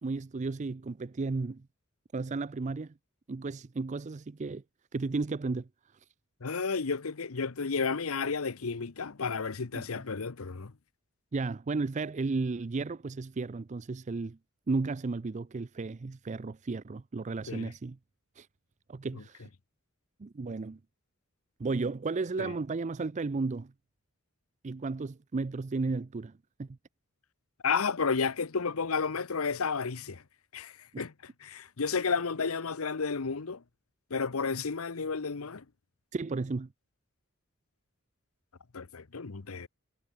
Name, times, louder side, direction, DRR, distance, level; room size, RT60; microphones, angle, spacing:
voice 1, 0.0-1.6 2.1-2.9 3.3-4.6 4.9-5.7 9.7-9.8 11.3-14.4 14.7-18.0 18.4-18.5 18.9-19.5 20.2-20.8 21.6-23.7 24.6-26.3 26.6-26.7 30.9-31.0 36.1-36.7, right 3 dB, 35° right, 0.4 m, -33 dB
voice 2, 6.4-10.7 17.5-17.7 19.1-19.2 22.4-22.5 27.6-30.2 30.5-31.1 31.4-33.6 34.1-35.6 38.7-39.7, left 5 dB, 80° left, 0.9 m, -32 dB
head